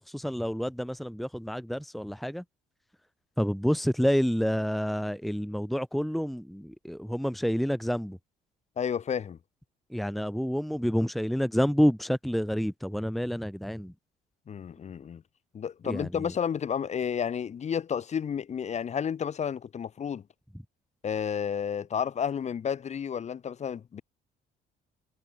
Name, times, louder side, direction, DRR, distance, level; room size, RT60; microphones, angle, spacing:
voice 1, 0.0-2.4 3.4-8.2 9.9-13.9 15.8-16.3, equal, ahead, 2.0 m, -28 dB
voice 2, 8.8-9.4 14.5-15.2 15.5-20.2 21.0-24.0, left 7 dB, 40° left, 3.5 m, -31 dB
cardioid pair, 110°, 17 cm